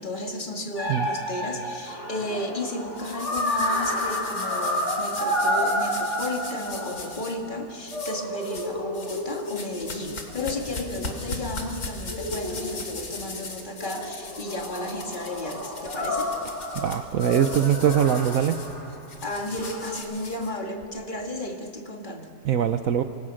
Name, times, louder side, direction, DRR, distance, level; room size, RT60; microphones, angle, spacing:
voice 1, 0.0-16.3 19.2-22.3, left 1 dB, 30° left, 2 dB, 2.3 m, -33 dB
sound 1, 0.8-7.5 7.9-11.2 12.1-13.4 13.8-18.9 19.5-20.0, equal, 45° left, 5.8 m, -30 dB
sound 2, 2.9-7.3 7.9-8.7 8.9-20.8, left 3 dB, 65° left, 3.3 m, -39 dB
voice 2, 16.7-18.6 22.5-23.0, right 9 dB, 60° right, 8 dB, 1.1 m, -22 dB
25.5 x 24.5 x 6.4 m, 2.4 s
omnidirectional pair, 1.7 m